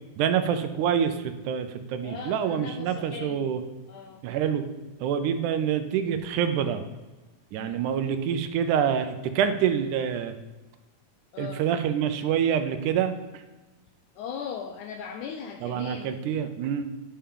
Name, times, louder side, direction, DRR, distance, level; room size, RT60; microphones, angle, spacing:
voice 1, 0.2-3.6 4.2-4.7 5.0-6.8 7.5-10.3 11.4-13.4 15.6-16.8, right 8 dB, 80° right, 9 dB, 1.9 m, -26 dB
voice 2, 2.0-3.5 3.9-4.2 7.5-7.9 11.3-11.6 14.2-16.2, left 7 dB, 80° left, 4 dB, 1.8 m, -38 dB
10.0 x 5.7 x 3.7 m, 1.2 s
omnidirectional pair, 3.8 m